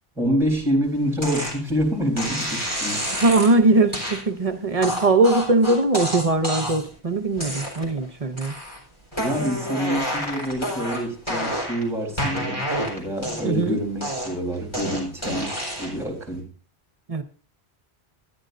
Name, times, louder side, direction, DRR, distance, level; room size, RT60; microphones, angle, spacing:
voice 1, 0.2-3.0 9.2-16.5, equal, ahead, 1 dB, 3.7 m, -27 dB
sound 1, 1.2-1.6 2.2-3.5 3.9-4.2 4.8-6.9 7.4-8.0 8.4-8.8 9.1-11.8 12.2-13.6 14.0-16.0, equal, 25° left, 4.3 m, -29 dB
voice 2, 3.1-8.6 13.4-13.8 17.1-17.2, right 2 dB, 40° right, 9 dB, 0.8 m, -20 dB
13.0 x 10.5 x 2.6 m, 0.38 s
omnidirectional pair, 1.1 m